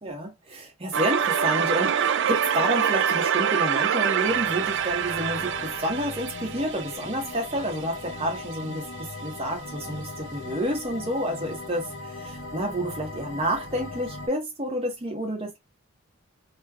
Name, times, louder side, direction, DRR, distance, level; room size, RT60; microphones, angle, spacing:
voice 1, 0.0-15.6, equal, 25° right, 1.1 m, -29 dB
sound 1, 0.9-7.8, right 8 dB, 55° right, 0.3 m, -25 dB
sound 2, 4.3-14.3, left 2 dB, 55° left, 0.8 m, -39 dB
3.2 x 3.0 x 2.3 m
head